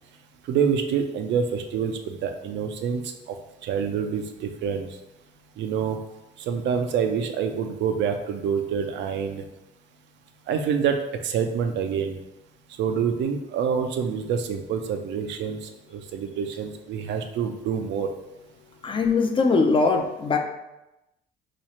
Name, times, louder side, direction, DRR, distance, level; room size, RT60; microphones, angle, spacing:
voice 1, 0.5-3.4 3.6-4.9 5.6-6.0 6.4-9.4 10.5-12.1 12.8-18.1, right 7 dB, 75° right, 6 dB, 0.4 m, -27 dB
voice 2, 18.8-20.4, left 4 dB, 25° left, 3 dB, 0.4 m, -21 dB
3.1 x 2.4 x 4.1 m, 0.95 s
cardioid pair, 105°, 19 cm